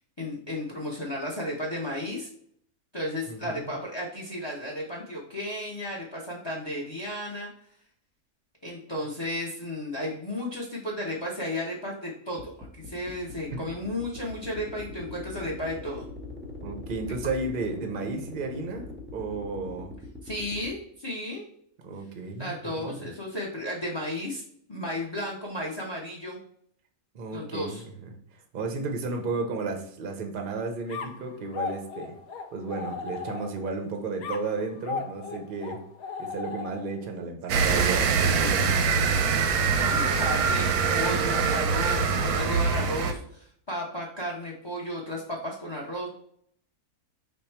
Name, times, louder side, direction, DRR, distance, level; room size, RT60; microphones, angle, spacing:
voice 1, 0.2-2.3 2.9-7.5 8.6-12.5 12.8-16.0 20.2-21.4 22.4-24.4 24.7-26.4 27.3-27.8 39.8-46.1, left 1 dB, 35° left, -2 dB, 0.4 m, -34 dB
voice 2, 3.3-3.7 13.5-13.6 16.6-19.9 21.8-23.1 27.1-32.2 32.5-35.8 36.2-39.1, right 3 dB, 60° right, 4 dB, 0.5 m, -33 dB
sound 1, 12.4-20.7, left 2 dB, 10° right, 0.6 m, -42 dB
sound 2, 30.9-33.8 34.2-37.1, left 5 dB, 75° left, 1.0 m, -37 dB
sound 3, 37.5-43.1, right 5 dB, 90° right, 1.1 m, -24 dB
5.2 x 2.2 x 4.3 m, 0.65 s
omnidirectional pair, 1.6 m